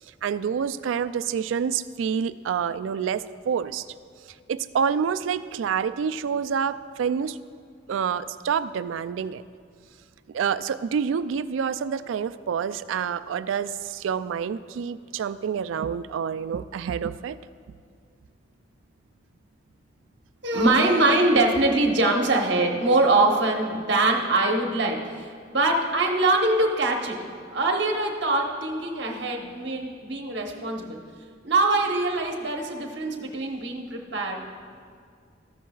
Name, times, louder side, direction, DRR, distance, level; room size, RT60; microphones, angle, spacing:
voice 1, 0.2-3.9 4.5-7.4 7.9-9.4 10.3-17.4, right 7 dB, 85° right, 15 dB, 0.3 m, -27 dB
voice 2, 20.4-27.2 27.5-31.0 31.4-34.5, right 2 dB, 65° right, 2 dB, 1.0 m, -23 dB
14.0 x 10.0 x 2.3 m, 2.1 s
head